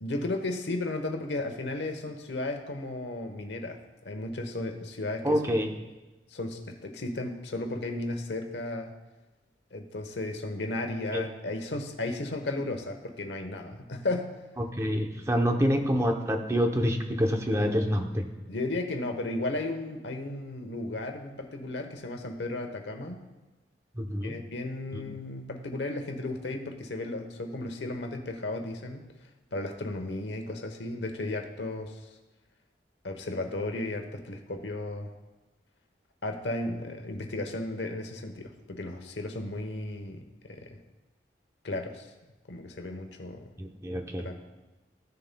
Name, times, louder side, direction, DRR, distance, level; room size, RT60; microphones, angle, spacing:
voice 1, 0.0-3.8 4.0-5.4 6.3-8.9 9.7-14.3 18.5-23.2 24.2-29.1 29.5-32.0 33.0-35.1 36.2-40.8 41.6-42.1 42.5-43.5 44.2-44.3, left 2 dB, 90° left, 5 dB, 1.0 m, -34 dB
voice 2, 5.2-5.7 11.1-11.2 14.6-18.2 23.9-24.4 24.9-25.0 43.6-44.3, equal, 15° right, 3 dB, 0.7 m, -27 dB
15.0 x 6.8 x 2.3 m, 1.1 s
head